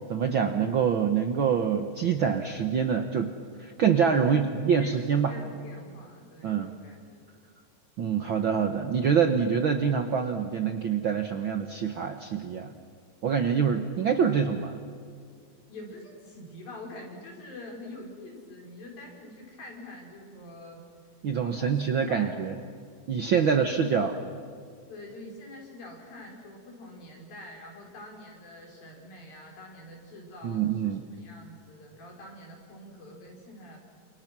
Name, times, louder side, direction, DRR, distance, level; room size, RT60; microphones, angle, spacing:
voice 1, 0.1-3.3 3.6-5.3 6.4-6.7 8.0-12.7 13.2-14.8 21.2-22.5 23.1-24.1 30.4-31.0, right 7 dB, 85° right, 6 dB, 1.1 m, -25 dB
voice 2, 4.2-7.3 15.7-20.8 21.4-22.3 23.4-24.1 24.9-33.8, left 1 dB, 90° left, 0 dB, 7.0 m, -45 dB
29.5 x 27.5 x 6.1 m, 2.3 s
omnidirectional pair, 4.0 m